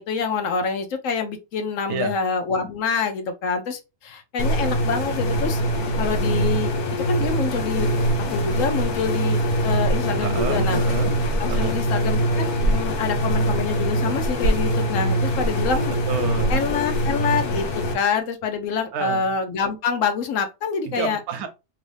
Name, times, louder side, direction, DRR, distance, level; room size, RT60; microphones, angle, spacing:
voice 1, 0.0-5.6 6.0-7.9 8.3-9.4 9.6-10.8 11.4-15.9 16.5-21.2, left 5 dB, 65° left, 1.0 m, -26 dB
sound 1, 4.4-17.9, right 1 dB, 90° left, 1.3 m, -23 dB
voice 2, 10.2-11.1 11.5-11.8 16.0-16.6 18.9-19.3 20.9-21.5, right 6 dB, 90° right, 1.2 m, -28 dB
3.0 x 2.6 x 3.2 m
omnidirectional pair, 1.5 m